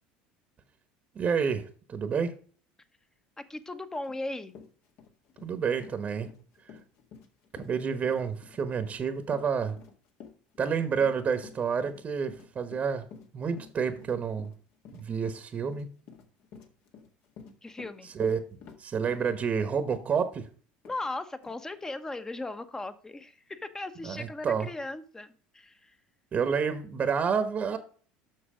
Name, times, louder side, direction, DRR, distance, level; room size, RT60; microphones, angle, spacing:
voice 1, 1.1-2.3 5.4-6.3 7.5-9.8 10.6-13.1 13.3-14.5 14.9-15.9 18.1-18.4 18.8-20.5 24.0-24.7 26.3-27.8, right 6 dB, 35° right, 10 dB, 1.1 m, -29 dB
voice 2, 3.4-4.6 17.6-18.1 20.8-26.0, left 2 dB, 15° left, 12 dB, 1.0 m, -37 dB
Run, 4.1-4.2 4.5-20.5 20.8-21.0 21.4-21.6, left 6 dB, 60° left, 1.8 m, -51 dB
7.7 x 6.1 x 5.0 m, 0.42 s
supercardioid pair, 95°, 4 cm